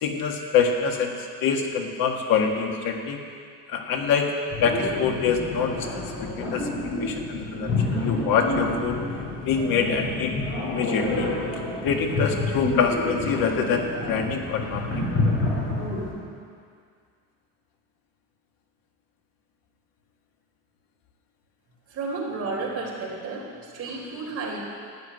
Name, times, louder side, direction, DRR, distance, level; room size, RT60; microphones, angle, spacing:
voice 1, 0.0-3.2 3.7-4.3 4.6-6.1 6.4-6.7 7.0-9.0 9.5-10.3 10.7-11.3 11.8-14.9, left 6 dB, 85° left, 2 dB, 1.8 m, -25 dB
sound 1, 4.5-16.1, left 2 dB, 45° left, 3.8 m, -28 dB
voice 2, 21.9-24.6, right 3 dB, 45° right, -3 dB, 3.8 m, -32 dB
12.0 x 9.5 x 9.3 m, 2.2 s
cardioid pair, 170°, 34 cm